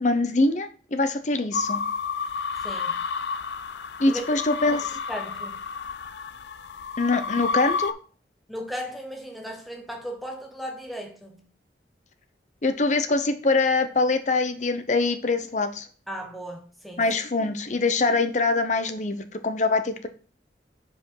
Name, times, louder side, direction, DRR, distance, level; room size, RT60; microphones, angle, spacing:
voice 1, 0.0-1.8 4.0-5.0 7.0-7.9 12.6-15.9 17.0-20.1, left 3 dB, 40° left, 0.7 m, -24 dB
sound 1, 1.5-7.9, left 5 dB, 75° left, 0.5 m, -31 dB
voice 2, 2.6-3.0 4.1-4.2 5.1-5.7 8.5-11.5 16.1-17.1, equal, ahead, 1.0 m, -36 dB
5.0 x 4.9 x 5.4 m
head